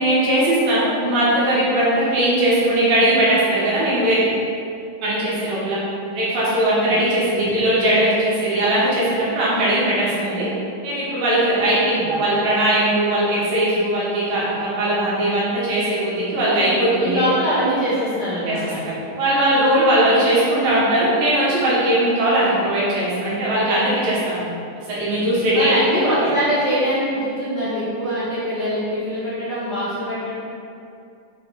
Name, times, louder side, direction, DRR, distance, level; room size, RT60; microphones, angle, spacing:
voice 1, 0.0-4.3 5.0-5.8 6.1-10.5 10.8-17.3 18.5-18.6 18.9-24.4 24.9-26.3, right 1 dB, 90° right, -8 dB, 3.7 m, -19 dB
voice 2, 11.7-12.1 16.9-18.8 25.5-30.3, equal, 40° left, -11 dB, 1.7 m, -23 dB
7.5 x 5.3 x 4.4 m, 2.5 s
omnidirectional pair, 3.9 m